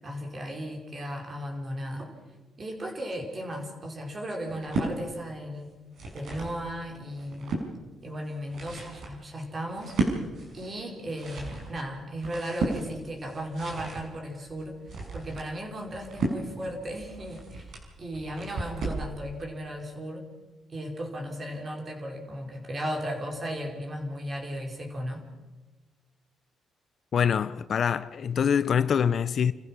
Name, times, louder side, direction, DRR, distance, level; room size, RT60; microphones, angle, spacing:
voice 1, 0.0-2.1 2.6-5.8 6.1-7.7 8.0-10.0 10.5-14.8 15.1-17.7 18.0-20.3 20.7-25.3, equal, 35° right, 5.0 m, -36 dB
sound 1, 4.5-4.9 5.7-6.6 7.0-7.7 8.3-19.1, right 3 dB, 65° right, 5.7 m, -34 dB
voice 2, 27.1-29.5, left 7 dB, 55° left, 0.7 m, -24 dB
29.0 x 15.0 x 6.2 m
cardioid pair, 90°, 0 cm